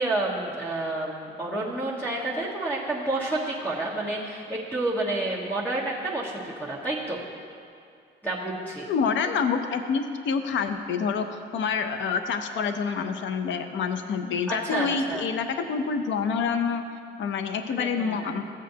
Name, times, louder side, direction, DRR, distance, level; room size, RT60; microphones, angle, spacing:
voice 1, 0.0-7.2 8.2-8.9 14.5-15.2 17.7-18.3, right 2 dB, 10° left, -6 dB, 1.5 m, -29 dB
voice 2, 8.9-16.8 17.2-18.4, left 6 dB, 70° left, 8 dB, 0.7 m, -27 dB
14.5 x 7.4 x 2.8 m, 2.3 s
cardioid pair, 90°, 20 cm